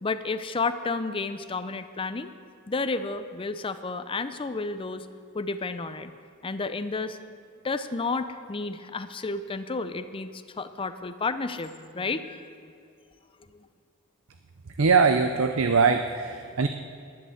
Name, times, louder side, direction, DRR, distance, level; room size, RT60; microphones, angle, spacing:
voice 1, 0.0-2.3 2.7-5.0 5.3-6.1 6.4-7.2 7.6-10.3 10.6-12.5, left 3 dB, 25° left, 10 dB, 0.5 m, -31 dB
voice 2, 14.8-16.7, right 5 dB, 70° right, 8 dB, 0.6 m, -22 dB
11.5 x 11.0 x 7.7 m, 2.4 s
head